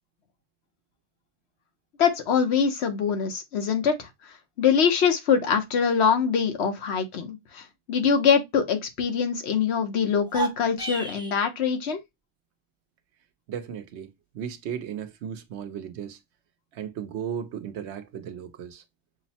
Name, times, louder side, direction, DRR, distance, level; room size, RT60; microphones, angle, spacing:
voice 1, 2.0-4.1 4.6-12.0, left 6 dB, 75° left, 1.1 m, -23 dB
sound 1, 10.2-11.4, right 4 dB, 5° right, 0.6 m, -32 dB
voice 2, 13.5-16.2 16.7-18.8, right 8 dB, 85° right, 0.9 m, -35 dB
6.2 x 2.1 x 2.7 m
omnidirectional pair, 1.1 m